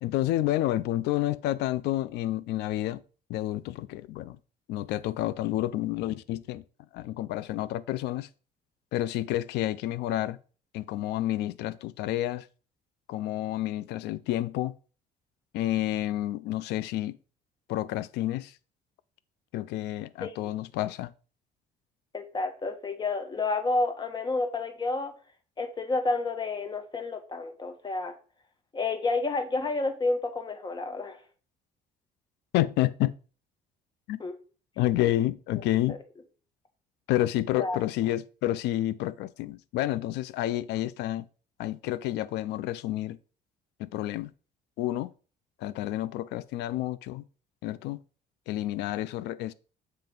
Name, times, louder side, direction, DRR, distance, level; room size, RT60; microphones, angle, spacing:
voice 1, 0.0-3.0 3.3-4.4 4.7-6.6 6.9-8.3 8.9-10.4 10.7-12.5 13.1-14.7 15.5-17.2 17.7-18.5 19.5-21.1 32.5-33.1 34.1-34.2 34.8-36.0 37.1-41.3 41.6-43.2 43.8-44.3 44.8-45.1 45.6-47.2 47.6-48.0 48.5-49.5, left 14 dB, 85° left, 0.5 m, -29 dB
voice 2, 22.1-25.1 25.6-28.1 28.7-31.2 34.2-34.3 35.9-36.0 37.6-37.8, left 3 dB, 25° left, 1.3 m, -30 dB
7.5 x 3.3 x 5.3 m
cardioid pair, 110°, 17 cm